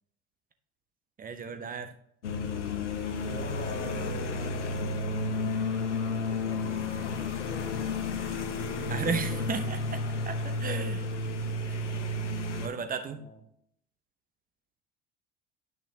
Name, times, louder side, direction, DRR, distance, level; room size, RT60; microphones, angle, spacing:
voice 1, 1.2-1.9 8.9-11.1 11.7-11.8 12.6-13.2, right 5 dB, 25° right, 9 dB, 0.8 m, -34 dB
sound 1, 2.2-12.7, left 3 dB, 80° left, 0.8 m, -32 dB
voice 2, 3.2-5.0 5.8-8.8 9.3-9.5 13.1-13.4, left 2 dB, 20° left, 5 dB, 1.5 m, -45 dB
10.0 x 6.0 x 2.8 m, 0.70 s
figure-of-eight pair, 70°, 35 cm